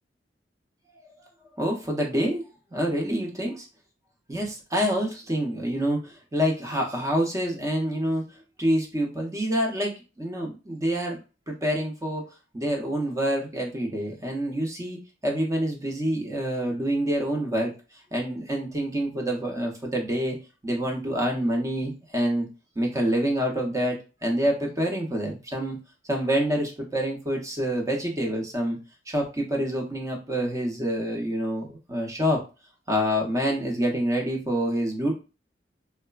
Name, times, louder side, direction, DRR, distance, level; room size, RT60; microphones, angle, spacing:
voice 1, 1.6-2.4 2.7-3.7 4.3-8.2 8.6-11.2 11.5-12.2 12.5-15.0 15.2-17.7 18.1-20.4 20.6-22.5 22.8-25.8 26.1-28.8 29.1-32.4 32.9-35.2, equal, 20° right, 1 dB, 0.5 m, -27 dB
3.2 x 2.0 x 2.2 m, 0.30 s
head